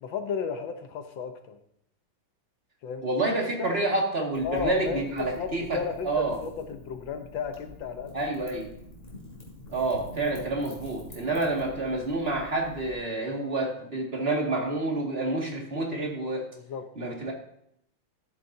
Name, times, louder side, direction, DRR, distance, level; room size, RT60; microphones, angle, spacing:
voice 1, 0.0-1.6 2.8-3.7 4.4-8.2 16.7-16.8, left 6 dB, 75° left, 7 dB, 1.6 m, -34 dB
voice 2, 3.0-5.8 6.0-6.4 8.1-8.7 9.7-16.5 17.0-17.3, right 2 dB, 30° right, -1 dB, 2.3 m, -28 dB
Wind / Fire, 4.3-12.9, left 1 dB, 30° left, 3.9 m, -46 dB
13.0 x 11.0 x 2.8 m, 0.73 s
omnidirectional pair, 2.1 m